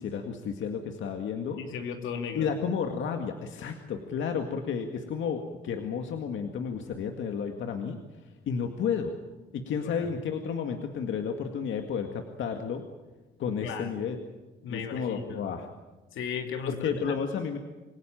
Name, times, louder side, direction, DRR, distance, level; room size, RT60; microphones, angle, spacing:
voice 1, 0.0-1.6 2.3-8.0 8.5-9.2 9.5-12.8 13.4-14.2 14.7-15.7 16.7-17.6, left 6 dB, 75° left, 5 dB, 2.1 m, -32 dB
voice 2, 1.6-2.5 9.8-10.1 13.6-13.9 14.6-15.5 16.1-16.9, left 6 dB, 90° left, 5 dB, 3.0 m, -36 dB
27.0 x 17.0 x 8.9 m, 1.2 s
cardioid pair, 90°, 20 cm